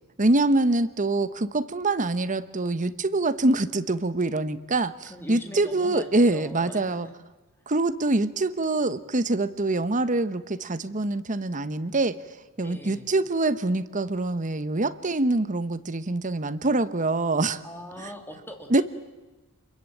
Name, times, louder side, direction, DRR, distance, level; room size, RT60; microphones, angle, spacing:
voice 1, 0.2-7.1 7.7-12.2 12.6-17.6 18.0-18.1 18.7-18.8, right 2 dB, 35° right, 13 dB, 1.0 m, -25 dB
voice 2, 5.0-7.1 12.6-13.1 17.6-18.8, left 1 dB, 10° left, 3 dB, 3.3 m, -41 dB
28.5 x 22.0 x 9.1 m, 1.1 s
head